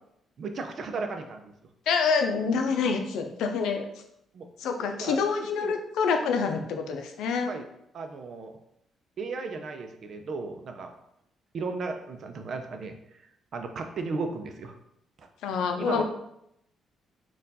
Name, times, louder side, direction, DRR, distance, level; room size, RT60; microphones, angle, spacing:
voice 1, 0.4-1.5 4.3-4.5 4.9-5.2 5.6-5.7 7.5-7.6 7.9-8.6 9.2-10.9 11.5-13.0 13.5-14.7 15.2-15.3 15.8-16.0, right 4 dB, 55° right, 5 dB, 0.6 m, -35 dB
voice 2, 1.9-3.9 4.6-7.5 15.4-16.0, left 5 dB, 85° left, 5 dB, 0.5 m, -27 dB
4.3 x 2.5 x 4.1 m, 0.77 s
cardioid pair, 90°, 0 cm